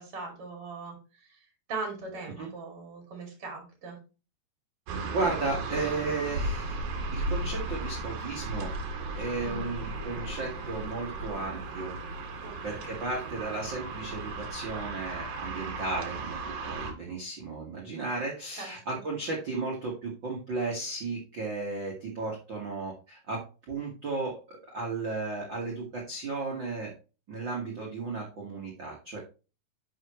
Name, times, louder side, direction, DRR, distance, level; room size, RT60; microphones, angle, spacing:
voice 1, 0.0-1.4 1.7-4.0 9.4-9.7 12.4-12.5 18.6-19.0, right 4 dB, 35° right, 2 dB, 3.0 m, -40 dB
sound 1, 4.9-16.9, right 2 dB, 60° right, 2.2 m, -35 dB
voice 2, 5.1-6.8 7.1-8.7 9.1-12.0 12.6-26.9 27.3-29.2, right 3 dB, 85° right, -2 dB, 1.0 m, -34 dB
9.4 x 6.3 x 3.1 m, 0.33 s
omnidirectional pair, 5.1 m